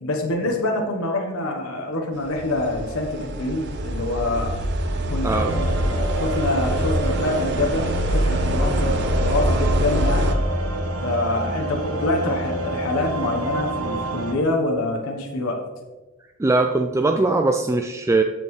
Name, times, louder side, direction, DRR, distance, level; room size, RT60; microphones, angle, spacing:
voice 1, 0.0-4.5 5.1-5.7 6.1-10.4 11.0-15.6, left 2 dB, 75° left, 1 dB, 1.1 m, -26 dB
sound 1, 2.3-10.3, equal, 55° right, 0.7 m, -24 dB
voice 2, 5.2-5.6 16.4-18.2, right 3 dB, 15° right, 5 dB, 0.3 m, -20 dB
sound 2, 5.3-14.3, right 1 dB, 75° right, 1.4 m, -28 dB
13.5 x 5.3 x 3.2 m, 1.2 s
head